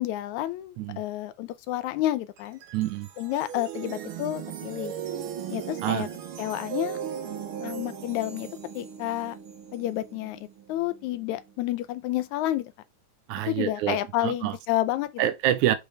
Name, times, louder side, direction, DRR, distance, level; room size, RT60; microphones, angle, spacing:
voice 1, 0.0-2.6 3.2-4.9 5.5-6.1 6.4-7.0 7.6-8.5 8.8-9.4 9.7-12.7 13.5-15.3, left 14 dB, 80° left, 2.0 m, -30 dB
sound 1, 2.4-11.6, right 8 dB, 70° right, 1.3 m, -38 dB
voice 2, 2.7-3.1 5.8-6.1 13.3-14.0 14.2-14.6 15.2-15.8, right 12 dB, 85° right, 2.1 m, -26 dB
5.7 x 5.2 x 3.2 m
omnidirectional pair, 3.4 m